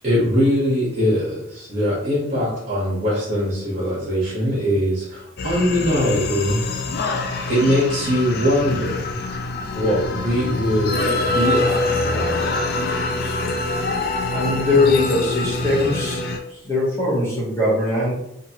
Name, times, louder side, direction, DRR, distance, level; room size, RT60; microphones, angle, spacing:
voice 1, 0.0-6.6 7.0-9.1 9.7-12.9 16.5-16.6, equal, 40° right, -7 dB, 0.9 m, -22 dB
sound 1, 5.4-16.4, left 2 dB, 50° left, 0.3 m, -25 dB
voice 2, 14.3-16.2 16.6-18.1, left 2 dB, 15° left, -7 dB, 0.8 m, -20 dB
2.9 x 2.4 x 2.8 m, 0.79 s
head